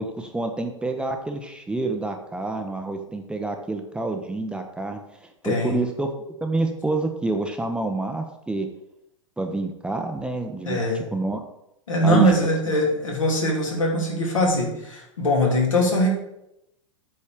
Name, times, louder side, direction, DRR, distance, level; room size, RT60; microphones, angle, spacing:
voice 1, 0.0-5.0 5.4-6.1 6.4-8.7 9.4-10.8 11.1-11.4 12.0-12.3, right 2 dB, 5° right, 4 dB, 0.8 m, -27 dB
voice 2, 5.4-5.8 10.6-11.0 11.9-16.1, equal, 75° left, -2 dB, 2.9 m, -21 dB
8.5 x 4.3 x 7.1 m, 0.82 s
figure-of-eight pair, 100°, 17 cm